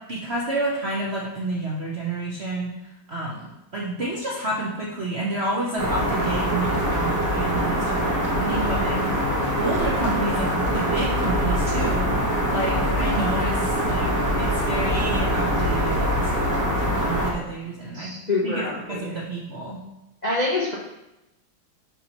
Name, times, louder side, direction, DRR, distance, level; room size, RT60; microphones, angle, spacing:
voice 1, 0.1-9.0 9.6-12.1 12.5-16.3 16.8-18.1 18.4-18.6 18.9-19.8, right 2 dB, 60° right, -4 dB, 0.6 m, -29 dB
sound 1, 5.8-17.3, equal, 20° right, 0.5 m, -23 dB
voice 2, 8.5-9.0 17.9-19.2 20.2-20.7, left 2 dB, 65° left, -4 dB, 0.4 m, -27 dB
6.0 x 5.4 x 2.9 m, 0.93 s
omnidirectional pair, 2.2 m